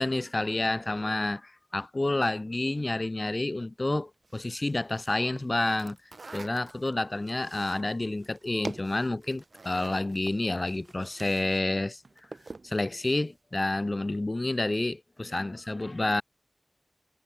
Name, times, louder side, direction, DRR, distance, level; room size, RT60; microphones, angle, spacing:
voice 1, 0.0-6.0 6.3-12.0 12.6-16.2, left 2 dB, 50° left, 5.1 m, -29 dB
sound 1, 4.2-11.6 11.9-12.7, right 3 dB, 90° right, 3.0 m, -45 dB
wide cardioid pair, 45°, 0 cm